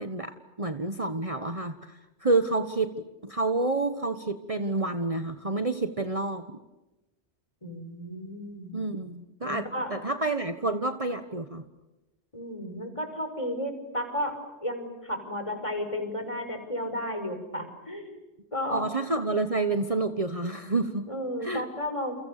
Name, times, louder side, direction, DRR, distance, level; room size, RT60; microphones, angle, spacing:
voice 1, 0.0-6.4 8.7-11.6 18.7-21.1 21.4-21.6, right 2 dB, 30° right, 8 dB, 1.4 m, -29 dB
voice 2, 7.6-8.8 9.4-9.9 12.3-14.4 14.6-18.2 18.5-18.8 21.1-22.1, equal, 30° left, 6 dB, 5.7 m, -33 dB
30.0 x 29.5 x 6.7 m, 1.0 s
omnidirectional pair, 1.2 m